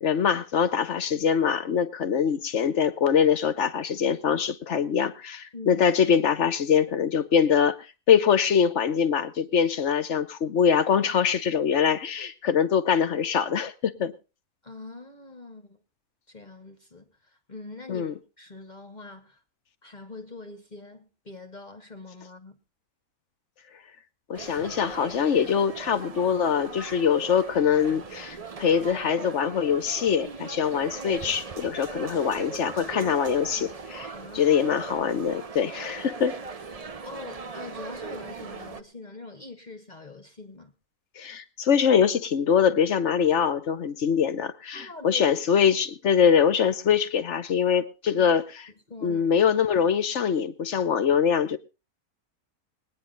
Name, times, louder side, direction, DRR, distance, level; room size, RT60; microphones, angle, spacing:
voice 1, 0.0-7.8 8.1-14.1 17.9-18.1 24.3-36.3 41.2-48.4 49.0-51.6, left 7 dB, 55° left, 1.1 m, -23 dB
voice 2, 5.5-5.8 14.6-15.8 16.3-18.1 18.4-19.4 19.8-22.6 34.1-34.6 37.0-40.7 44.7-45.2 48.1-48.3 48.9-49.2, left 3 dB, 30° left, 1.1 m, -43 dB
sound 1, 24.3-38.8, right 4 dB, 35° right, 0.6 m, -39 dB
21.0 x 9.6 x 3.9 m
omnidirectional pair, 1.6 m